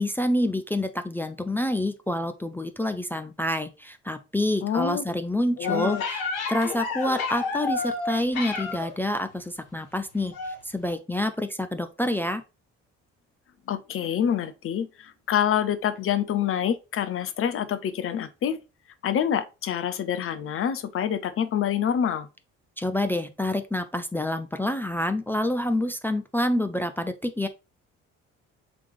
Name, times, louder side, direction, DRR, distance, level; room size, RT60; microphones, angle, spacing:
voice 1, 0.0-12.4 22.8-27.5, left 1 dB, 5° left, 0.4 m, -27 dB
voice 2, 4.6-5.0 5.6-6.0 13.7-18.6 19.0-22.3, left 9 dB, 35° left, 0.7 m, -26 dB
sound 1, 5.6-9.0 10.3-10.6 10.9-11.0, left 4 dB, 65° left, 1.2 m, -30 dB
4.9 x 3.4 x 3.1 m
figure-of-eight pair, 45°, 37 cm